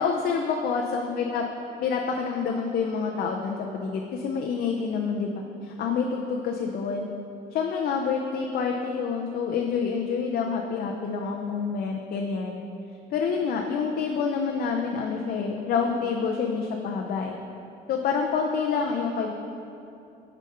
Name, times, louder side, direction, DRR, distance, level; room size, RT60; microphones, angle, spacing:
voice 1, 0.0-1.4 1.8-5.3 5.6-7.1 7.5-12.6 13.1-17.3 17.9-19.3, left 5 dB, 60° left, 1 dB, 0.6 m, -27 dB
6.4 x 5.2 x 5.5 m, 2.7 s
cardioid pair, 110°, 17 cm